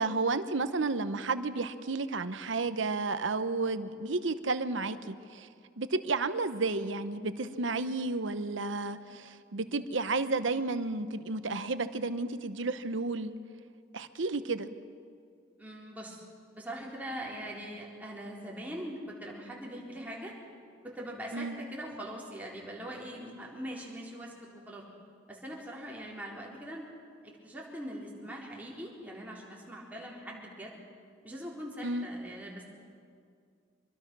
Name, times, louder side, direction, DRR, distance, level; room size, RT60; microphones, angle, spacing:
voice 1, 0.0-5.5 5.8-13.3 13.9-14.7 21.3-21.6 31.8-32.1, right 3 dB, 70° right, 11 dB, 1.0 m, -32 dB
voice 2, 15.6-16.2 16.6-20.3 20.8-24.8 25.3-26.8 27.2-30.8 31.2-32.6, equal, 10° right, -3 dB, 3.9 m, -42 dB
25.5 x 22.5 x 6.2 m, 2.3 s
head